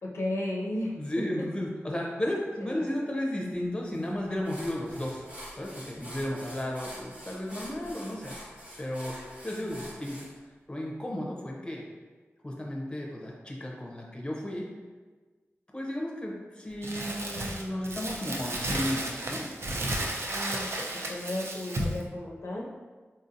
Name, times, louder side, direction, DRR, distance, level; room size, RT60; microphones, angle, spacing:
voice 1, 0.0-1.5 2.6-2.8 20.3-22.7, left 1 dB, 65° left, -2 dB, 0.5 m, -34 dB
voice 2, 0.9-5.3 5.5-8.4 8.8-9.1 9.4-10.2 10.7-11.8 12.4-14.7 15.7-19.4, left 1 dB, 20° left, -1 dB, 0.6 m, -34 dB
sound 1, 3.9-4.1 4.4-10.3, equal, 25° right, 0.9 m, -45 dB
Crumpling crinkling, 16.8-22.0, right 1 dB, 65° right, 0.4 m, -33 dB
4.0 x 2.7 x 2.6 m, 1.4 s
wide cardioid pair, 95°, 5 cm